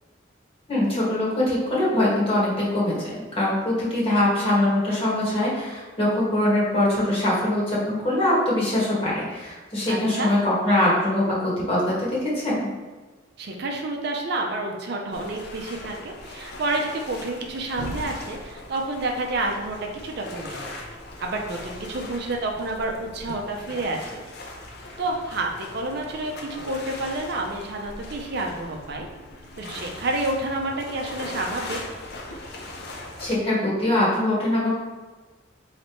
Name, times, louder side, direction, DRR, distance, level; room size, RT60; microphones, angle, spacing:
voice 1, 0.7-12.7 33.2-34.7, left 1 dB, 30° left, -6 dB, 1.4 m, -23 dB
voice 2, 9.9-10.3 13.4-19.8 20.0-20.6 21.2-24.2 25.0-29.1 29.6-31.8, right 2 dB, 60° right, 1 dB, 0.5 m, -29 dB
sound 1, 15.1-33.4, left 2 dB, 60° left, 0.6 m, -39 dB
4.3 x 3.2 x 3.0 m, 1.3 s
head